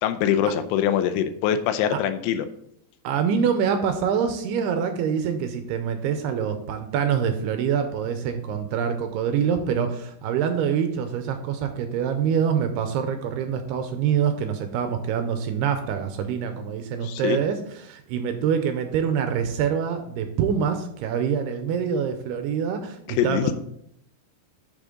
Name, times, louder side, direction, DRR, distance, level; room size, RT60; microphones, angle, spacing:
voice 1, 0.0-2.5 17.0-17.4 23.1-23.5, left 9 dB, 85° left, 9 dB, 2.7 m, -23 dB
voice 2, 3.0-23.5, right 7 dB, 80° right, 7 dB, 2.5 m, -25 dB
8.5 x 6.3 x 3.7 m, 0.71 s
omnidirectional pair, 5.0 m